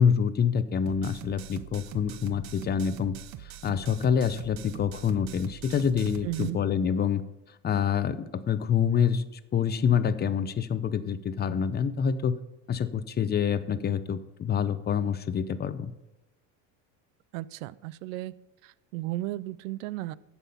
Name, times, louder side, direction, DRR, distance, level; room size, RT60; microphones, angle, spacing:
voice 1, 0.0-3.2 3.4-7.2 7.6-9.2 9.5-12.4 12.7-15.9, left 7 dB, 25° left, 14 dB, 0.6 m, -26 dB
sound 1, 0.9-6.5, right 12 dB, 45° right, 0.7 m, -44 dB
voice 2, 6.2-6.6 17.3-18.3 18.6-20.1, right 17 dB, 90° right, 19 dB, 0.5 m, -34 dB
11.0 x 7.1 x 5.6 m, 0.95 s
supercardioid pair, 110°, 39 cm